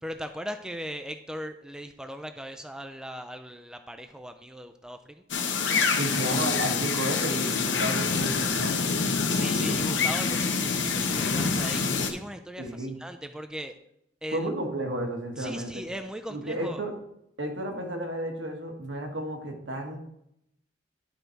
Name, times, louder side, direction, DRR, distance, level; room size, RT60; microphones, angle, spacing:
voice 1, 0.0-5.2 9.3-13.8 14.2-14.5 15.4-16.8, equal, 5° right, 7 dB, 0.3 m, -38 dB
sound 1, 5.3-12.1, left 5 dB, 70° left, 1.0 m, -26 dB
voice 2, 5.8-8.8 12.6-13.0 14.3-15.8 16.3-16.9 17.4-20.0, right 1 dB, 70° right, 2 dB, 1.5 m, -32 dB
11.0 x 4.0 x 4.5 m, 0.76 s
head